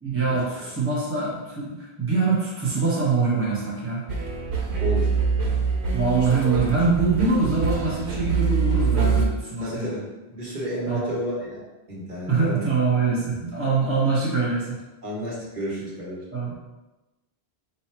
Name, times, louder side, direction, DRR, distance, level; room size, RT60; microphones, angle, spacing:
voice 1, 0.0-4.0 5.9-9.9 10.9-11.1 12.3-14.8 16.3-16.5, right 4 dB, 15° right, -6 dB, 0.9 m, -24 dB
sound 1, 4.1-9.3, right 5 dB, 90° right, 1.0 m, -24 dB
voice 2, 9.6-10.0 10.3-11.6 11.9-12.6 15.0-16.2, equal, 45° right, -7 dB, 1.4 m, -31 dB
4.2 x 2.4 x 4.4 m, 1.1 s
omnidirectional pair, 1.1 m